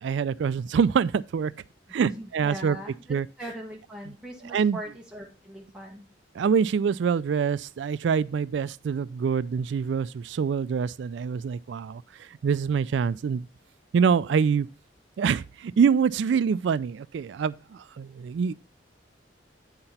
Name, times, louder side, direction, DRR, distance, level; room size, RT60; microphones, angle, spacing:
voice 1, 0.0-1.5 1.9-2.8 3.1-3.3 4.4-4.8 6.3-13.4 13.9-14.7 15.2-18.5, right 6 dB, 70° right, 0.3 m, -25 dB
voice 2, 1.9-3.0 3.4-6.0, equal, 5° right, 1.6 m, -40 dB
8.8 x 5.9 x 4.1 m
head